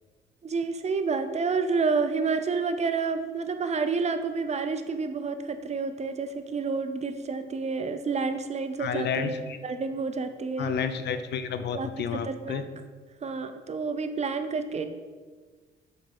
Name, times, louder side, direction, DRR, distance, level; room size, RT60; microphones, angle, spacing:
voice 1, 0.4-10.7 11.7-12.6 13.2-14.9, right 4 dB, 35° right, 9 dB, 0.5 m, -29 dB
voice 2, 8.8-9.6 10.6-12.6, left 7 dB, 60° left, 10 dB, 0.5 m, -31 dB
5.3 x 4.3 x 5.4 m, 1.4 s
cardioid pair, 90°, 20 cm